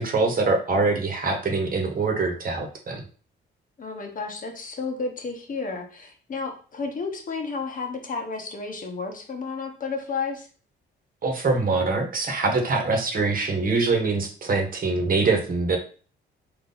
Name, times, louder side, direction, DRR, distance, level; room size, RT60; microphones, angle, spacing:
voice 1, 0.0-3.0 11.2-15.8, right 3 dB, 45° right, 3 dB, 1.2 m, -24 dB
voice 2, 3.8-10.5, left 4 dB, 45° left, 4 dB, 1.0 m, -32 dB
3.9 x 3.1 x 3.9 m, 0.40 s
cardioid pair, 90°, 20 cm